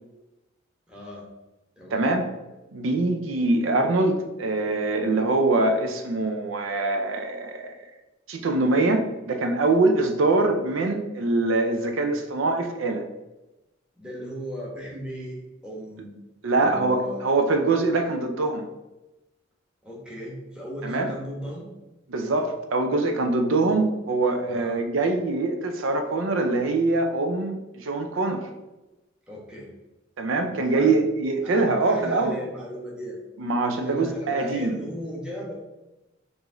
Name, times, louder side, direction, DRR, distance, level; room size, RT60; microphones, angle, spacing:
voice 1, 0.9-1.3 1.8-2.1 14.0-16.1 16.6-17.2 19.8-21.7 24.5-24.8 29.3-29.7 30.5-31.0 31.4-33.2 33.8-35.5, equal, 5° right, -4 dB, 1.1 m, -37 dB
voice 2, 1.9-2.2 2.7-7.8 8.3-13.0 16.4-18.6 20.8-21.1 22.1-28.4 30.2-32.4 33.4-34.8, right 2 dB, 90° right, 6 dB, 0.5 m, -23 dB
4.8 x 2.6 x 3.7 m, 1.0 s
head